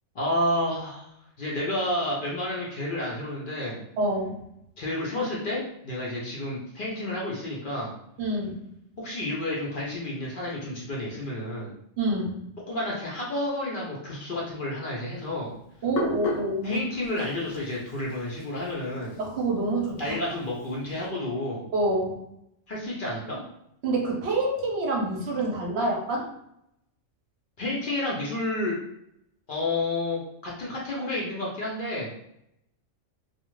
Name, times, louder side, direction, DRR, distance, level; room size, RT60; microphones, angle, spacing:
voice 1, 0.1-1.1 1.4-3.8 4.8-7.9 9.0-11.7 12.7-15.5 16.6-19.2 20.0-21.6 22.7-23.4 27.6-28.8 29.5-32.1, left 1 dB, 55° left, -5 dB, 0.7 m, -30 dB
voice 2, 4.0-4.4 8.2-8.6 12.0-12.4 15.8-16.8 19.2-20.0 21.7-22.2 23.8-26.2, right 2 dB, 65° right, -1 dB, 0.9 m, -27 dB
Hands, 15.1-21.1, left 2 dB, 90° left, 0.9 m, -37 dB
2.4 x 2.3 x 3.0 m, 0.78 s
omnidirectional pair, 1.3 m